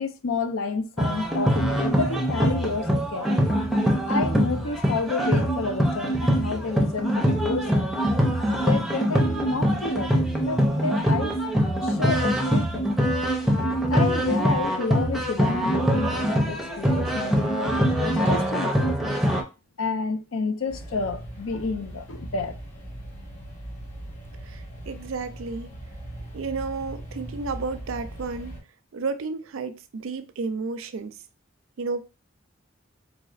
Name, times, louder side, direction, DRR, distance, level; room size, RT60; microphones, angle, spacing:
voice 1, 0.0-3.4 4.1-8.0 8.4-11.4 11.8-13.0 13.9-19.2 19.8-22.6, left 4 dB, 85° left, 0.5 m, -30 dB
sound 1, 1.0-19.4, equal, ahead, 0.5 m, -23 dB
sound 2, 20.7-28.6, right 1 dB, 35° left, 1.9 m, -39 dB
voice 2, 24.4-25.7 26.3-28.6 28.9-31.1 31.8-32.1, right 4 dB, 85° right, 0.4 m, -32 dB
4.0 x 3.2 x 2.4 m
head